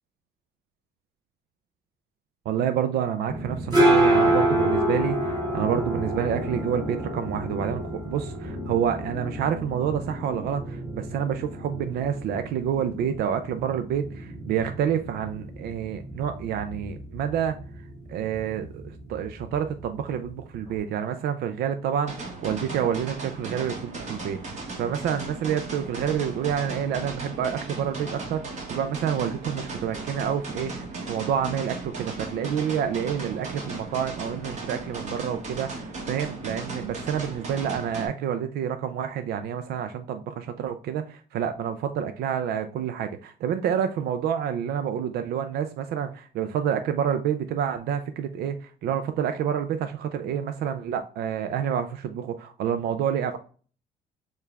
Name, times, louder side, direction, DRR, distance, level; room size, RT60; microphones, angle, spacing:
voice 1, 2.5-17.6 18.1-53.4, right 8 dB, 70° right, 8 dB, 0.5 m, -28 dB
sound 1, 3.3-20.8, right 1 dB, 25° right, 2.2 m, -28 dB
sound 2, 22.1-38.1, right 3 dB, 45° right, 1.6 m, -36 dB
6.5 x 2.4 x 3.3 m, 0.41 s
cardioid pair, 110°, 17 cm